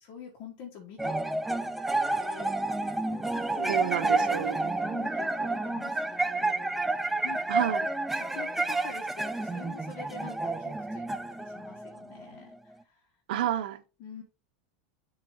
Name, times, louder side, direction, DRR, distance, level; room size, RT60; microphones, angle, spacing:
voice 1, 0.1-1.7 2.2-7.4 8.1-12.5 12.8-13.0 14.0-14.2, left 6 dB, 45° left, 1.7 m, -46 dB
sound 1, 1.0-12.5, right 2 dB, 5° right, 0.4 m, -30 dB
voice 2, 3.7-4.6 7.5-7.9 13.3-13.8, right 11 dB, 70° right, 0.9 m, -30 dB
7.5 x 3.2 x 4.9 m
supercardioid pair, 150°, 5 cm